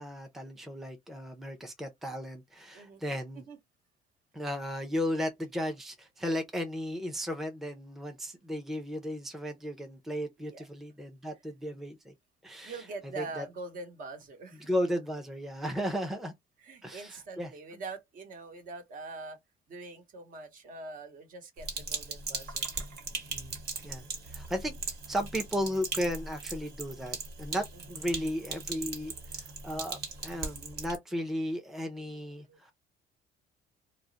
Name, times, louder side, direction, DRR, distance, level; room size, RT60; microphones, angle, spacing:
voice 1, 0.0-3.4 4.3-12.1 12.4-12.8 13.2-13.5 14.6-16.3 16.8-17.5 23.3-23.6 23.8-24.7 25.1-32.7, equal, ahead, 0.5 m, -35 dB
voice 2, 12.6-14.7 16.6-19.4 19.7-22.7 27.7-28.0 32.0-32.7, right 3 dB, 55° right, 1.0 m, -44 dB
Sink (filling or washing), 21.6-31.0, right 4 dB, 70° right, 1.2 m, -39 dB
2.3 x 2.0 x 3.8 m
cardioid pair, 110°, 17 cm